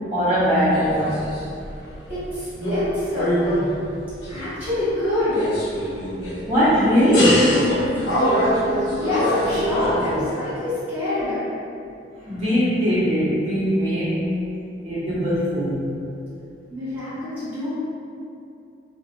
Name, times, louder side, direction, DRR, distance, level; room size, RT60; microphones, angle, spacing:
voice 1, 0.1-1.2 6.4-7.5 12.3-14.2 14.8-16.0, equal, 35° right, -14 dB, 1.0 m, -20 dB
sound 1, 0.7-1.8 2.1-2.9 3.1-4.7 5.2-6.7 7.1-10.2, equal, 65° left, 0.8 m, -24 dB
voice 2, 2.1-3.3 4.3-5.5 8.6-11.4 16.7-17.7, left 1 dB, 10° right, -16 dB, 1.1 m, -26 dB
2.5 x 2.0 x 3.0 m, 2.6 s
head